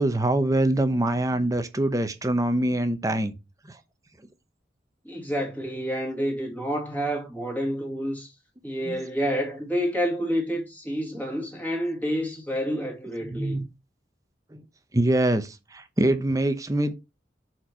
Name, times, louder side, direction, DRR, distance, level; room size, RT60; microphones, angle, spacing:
voice 1, 0.0-3.3 3.7-3.8 8.8-9.0 13.2-13.7 14.5-14.6 14.9-16.9, right 1 dB, 20° right, 0.8 m, -24 dB
voice 2, 5.0-8.3 8.6-13.6, equal, 10° left, 2.3 m, -29 dB
7.1 x 4.5 x 4.5 m
head